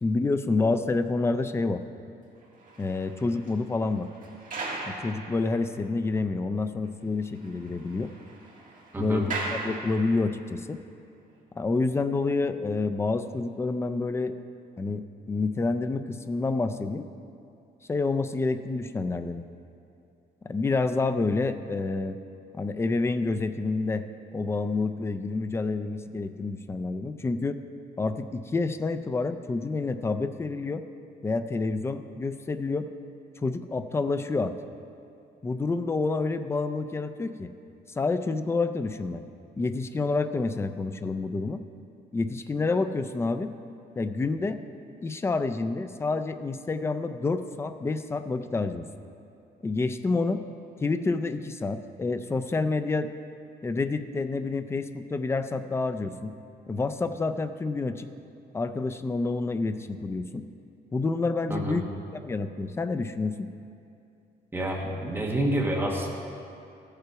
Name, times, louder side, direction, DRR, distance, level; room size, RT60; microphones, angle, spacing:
voice 1, 0.0-1.8 2.8-4.1 4.9-8.1 9.0-10.8 11.6-14.3 14.8-17.1 17.9-19.4 20.4-22.2 22.5-24.1 24.3-27.6 28.0-30.8 31.2-32.9 33.4-34.6 35.4-37.5 37.9-39.3 39.6-41.6 42.1-43.5 44.0-44.6 45.0-48.9 49.6-50.4 50.8-53.1 53.6-56.3 56.7-58.1 58.5-60.5 60.9-61.8 62.1-63.5, left 3 dB, 15° left, 10 dB, 0.3 m, -28 dB
sound 1, 2.4-6.1 6.4-6.5 6.8-6.9 7.2-10.5 11.2-11.4, right 3 dB, 45° right, 1.8 m, -39 dB
voice 2, 64.5-66.1, right 1 dB, 10° right, -2 dB, 1.3 m, -28 dB
14.0 x 6.7 x 4.6 m, 2.6 s
wide cardioid pair, 165°, 18 cm